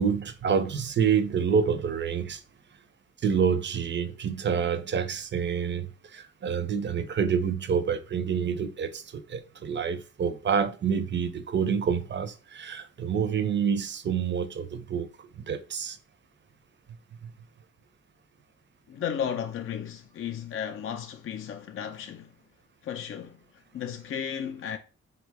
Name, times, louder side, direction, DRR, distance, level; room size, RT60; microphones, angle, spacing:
voice 1, 0.0-2.4 3.2-16.0 17.2-17.3, right 7 dB, 40° right, 0.5 m, -28 dB
voice 2, 18.9-22.3 22.8-23.4 23.7-24.8, left 8 dB, 45° left, 0.4 m, -34 dB
3.8 x 2.2 x 4.5 m
cardioid pair, 115°, 29 cm